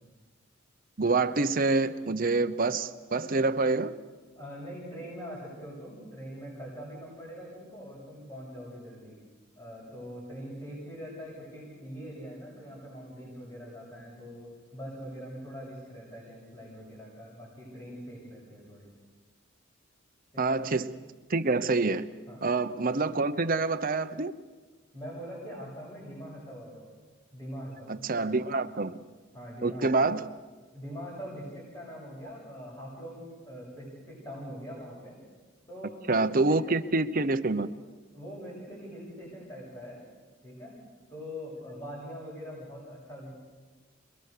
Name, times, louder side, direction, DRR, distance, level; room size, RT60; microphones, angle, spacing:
voice 1, 1.0-3.9 20.4-20.9 21.3-22.1 22.4-24.3 27.9-29.0 29.6-30.3 36.1-37.7, right 3 dB, 45° right, 0.9 m, -26 dB
voice 2, 4.3-9.2 9.6-18.9 20.3-20.6 22.3-22.5 24.9-26.9 27.3-28.0 28.6-28.8 29.3-30.1 30.7-35.2 35.7-36.8 38.1-40.0 40.4-40.8 41.1-43.3, equal, 20° left, 7.5 m, -43 dB
27.5 x 21.5 x 6.8 m
head